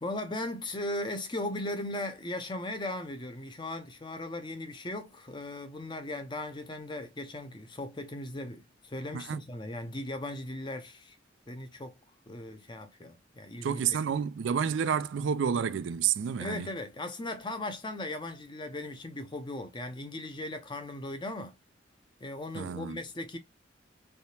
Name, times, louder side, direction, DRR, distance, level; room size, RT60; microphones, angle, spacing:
voice 1, 0.0-11.2 11.5-12.0 12.3-13.8 16.4-21.5 22.2-23.4, left 1 dB, 25° left, 0.7 m, -38 dB
voice 2, 13.6-16.7 22.5-23.0, right 7 dB, 70° right, 0.3 m, -30 dB
3.4 x 2.8 x 2.7 m
head